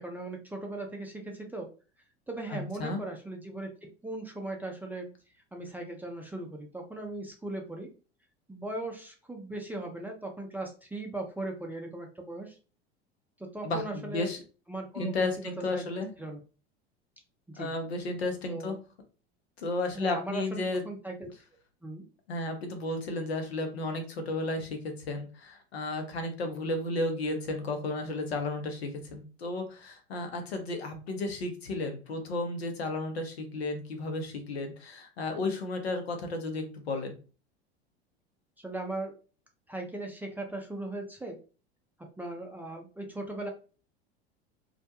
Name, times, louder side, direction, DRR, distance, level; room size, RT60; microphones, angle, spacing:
voice 1, 0.0-1.7 2.3-5.1 5.5-7.9 8.5-12.6 13.4-14.3 14.7-15.8 16.2-16.4 17.5-17.7 18.5-18.7 19.9-21.3 21.8-22.0 38.6-39.1 39.7-41.4 42.2-43.5, right 2 dB, 5° right, 1 dB, 0.4 m, -38 dB
voice 2, 2.5-3.0 13.6-14.4 14.9-16.1 17.6-18.8 19.6-20.8 22.3-37.2, left 2 dB, 75° left, 6 dB, 0.8 m, -33 dB
2.4 x 2.1 x 2.8 m, 0.35 s
figure-of-eight pair, 80°, 32 cm